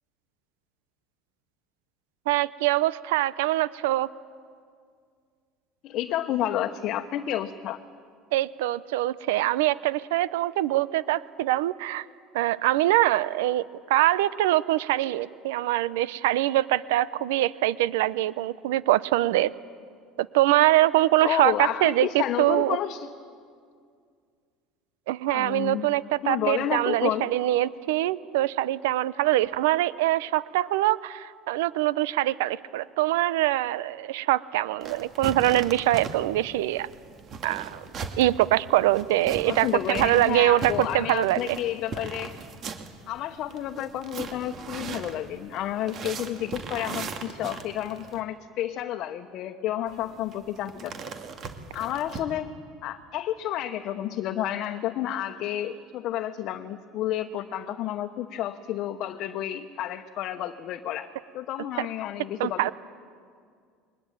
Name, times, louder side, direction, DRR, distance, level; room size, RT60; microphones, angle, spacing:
voice 1, 2.3-4.1 8.3-12.0 12.3-19.5 20.2-22.8 25.1-36.9 37.4-37.8 38.2-41.6 61.8-61.9 62.4-62.7, right 15 dB, 90° right, 18 dB, 0.6 m, -24 dB
voice 2, 5.8-7.8 21.2-23.1 25.3-25.9 26.2-27.3 39.5-42.4 43.1-50.9 51.7-52.5 52.8-61.1 61.3-62.7, left 12 dB, 55° left, 5 dB, 1.1 m, -30 dB
sound 1, 34.8-48.2 49.9-52.2, right 5 dB, 45° right, 2.2 m, -39 dB
22.0 x 20.5 x 9.0 m, 2.1 s
supercardioid pair, 110°, 0 cm